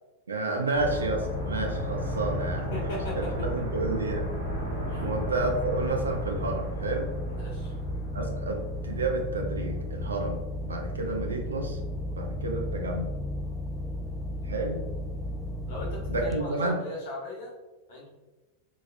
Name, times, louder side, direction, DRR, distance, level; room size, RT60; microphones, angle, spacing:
voice 1, 0.3-4.3 5.0-7.1 8.1-11.8 12.2-13.1 14.4-14.8 16.1-16.8, right 2 dB, 75° right, 2 dB, 0.5 m, -30 dB
sound 1, 0.7-9.4 9.7-9.8, right 1 dB, 75° left, 1.0 m, -37 dB
sound 2, 0.8-16.4, left 1 dB, 5° left, 0.4 m, -34 dB
voice 2, 2.7-3.3 4.9-5.1 7.3-7.7 15.7-17.5 17.9-18.1, left 2 dB, 50° left, -4 dB, 1.3 m, -39 dB
3.9 x 2.9 x 2.5 m, 1.2 s
figure-of-eight pair, 90°, 0 cm